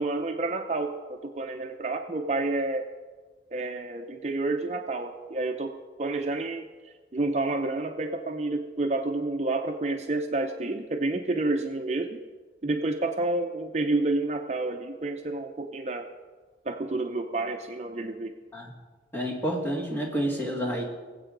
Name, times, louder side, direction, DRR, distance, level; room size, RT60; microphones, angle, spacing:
voice 1, 0.0-2.9 3.5-6.7 7.1-12.2 12.6-16.1 16.7-18.3, right 2 dB, 40° right, 5 dB, 0.6 m, -29 dB
voice 2, 19.1-20.8, equal, 10° left, -2 dB, 1.8 m, -29 dB
20.0 x 8.0 x 3.9 m, 1.4 s
head